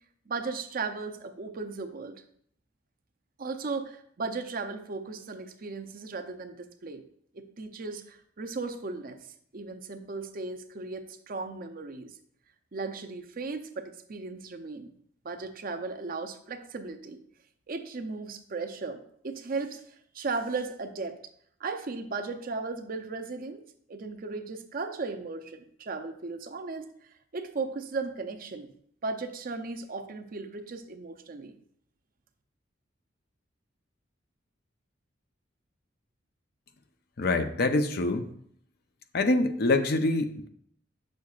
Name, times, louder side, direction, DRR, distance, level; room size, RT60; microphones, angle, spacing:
voice 1, 0.3-2.2 3.4-7.0 7.3-9.3 9.5-12.1 12.7-14.9 15.2-17.2 17.7-21.2 21.6-23.6 23.9-26.9 27.3-28.7 29.0-31.5, right 4 dB, 50° right, 7 dB, 0.6 m, -36 dB
voice 2, 37.2-38.3 39.1-40.5, left 2 dB, 55° left, 8 dB, 0.6 m, -25 dB
8.4 x 6.4 x 2.4 m, 0.66 s
head